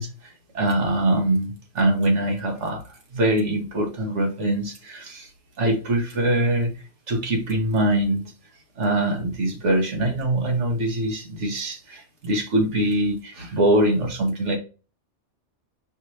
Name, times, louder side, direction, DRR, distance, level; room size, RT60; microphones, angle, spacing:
voice 1, 0.0-2.8 3.1-5.3 5.6-6.8 7.1-8.3 8.8-14.6, right 1 dB, 75° right, 1.6 m, -23 dB
5.2 x 3.2 x 2.7 m
omnidirectional pair, 1.2 m